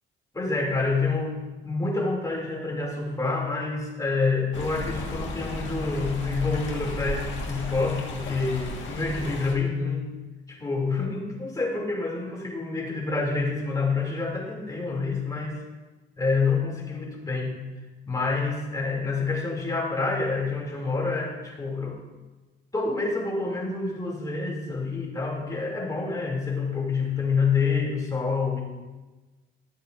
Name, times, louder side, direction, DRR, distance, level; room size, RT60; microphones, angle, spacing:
voice 1, 0.3-10.1 10.5-15.6 16.2-17.6 18.0-22.0 22.7-28.6, left 4 dB, 15° left, -3 dB, 2.7 m, -27 dB
Stream, 4.5-9.5, left 2 dB, 70° left, 1.6 m, -34 dB
13.0 x 8.0 x 2.6 m, 1.2 s
cardioid pair, 90°, 20 cm